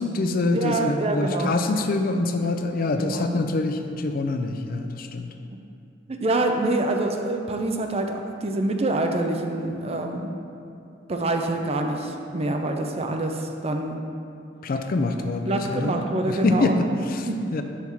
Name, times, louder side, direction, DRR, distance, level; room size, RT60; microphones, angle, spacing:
voice 1, 0.0-5.3 14.6-17.3 17.5-17.6, left 2 dB, 50° left, 6 dB, 0.4 m, -25 dB
voice 2, 0.5-1.5 3.0-3.4 5.5-5.6 6.2-10.3 11.1-14.0 15.5-16.7 17.3-17.4, right 2 dB, 35° right, 4 dB, 0.5 m, -26 dB
5.8 x 4.6 x 5.6 m, 2.6 s
head